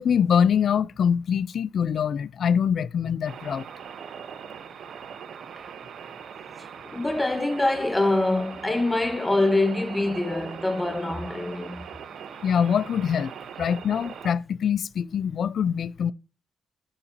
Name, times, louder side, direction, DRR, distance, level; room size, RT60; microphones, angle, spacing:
voice 1, 0.0-3.6 12.4-13.3 13.6-16.1, left 7 dB, 45° left, 0.3 m, -24 dB
sound 1, 3.2-14.3, right 7 dB, 55° right, 0.6 m, -41 dB
voice 2, 6.8-11.8, left 2 dB, 10° left, 1.1 m, -24 dB
9.6 x 5.8 x 4.0 m
cardioid pair, 170°, 0 cm